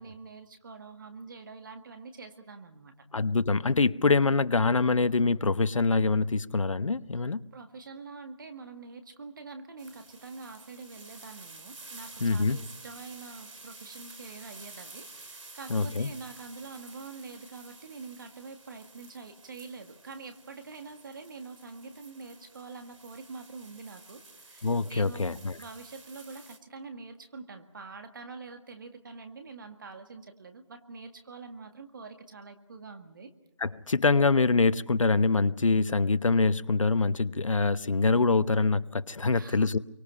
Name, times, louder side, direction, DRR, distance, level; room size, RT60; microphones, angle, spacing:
voice 1, 0.0-2.9 7.5-33.3 39.4-39.8, right 4 dB, 40° right, 1.8 m, -45 dB
voice 2, 3.1-7.4 12.2-12.6 15.7-16.1 24.6-25.6 33.6-39.8, left 3 dB, 80° left, 0.9 m, -25 dB
sound 1, 9.8-26.6, right 3 dB, 80° right, 2.8 m, -50 dB
27.0 x 24.0 x 5.6 m
figure-of-eight pair, 165°, 16 cm